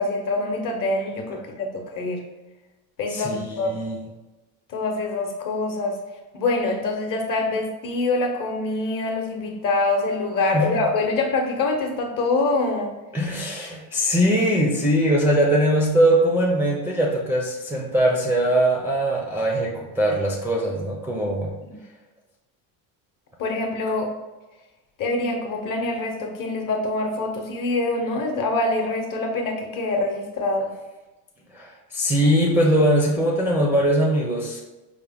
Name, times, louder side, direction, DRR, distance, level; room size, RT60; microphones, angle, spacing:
voice 1, 0.0-2.2 3.0-3.7 4.7-6.0 6.3-13.0 21.6-21.8 23.4-24.1 25.0-30.7, left 2 dB, 50° left, 3 dB, 0.8 m, -25 dB
voice 2, 3.1-4.0 10.5-10.8 13.1-21.5 31.5-34.6, right 1 dB, 5° right, -3 dB, 0.4 m, -21 dB
4.7 x 2.1 x 3.4 m, 1.1 s
cardioid pair, 115°, 43 cm